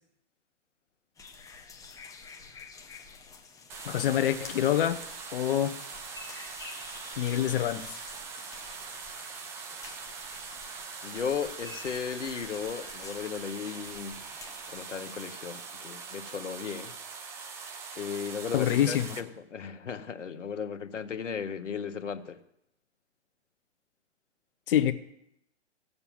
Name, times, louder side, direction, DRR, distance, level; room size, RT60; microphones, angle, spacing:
sound 1, 1.2-15.4, left 4 dB, 10° left, 1.1 m, -49 dB
sound 2, 3.7-19.2, right 5 dB, 10° right, 0.4 m, -42 dB
voice 1, 3.8-5.0 5.3-5.8 7.2-7.9 18.5-19.1 24.7-24.9, left 11 dB, 50° left, 1.0 m, -26 dB
voice 2, 11.0-14.2 14.7-17.0 18.0-22.4, left 7 dB, 80° left, 1.3 m, -36 dB
15.5 x 6.9 x 7.2 m
hypercardioid pair, 130°, 36 cm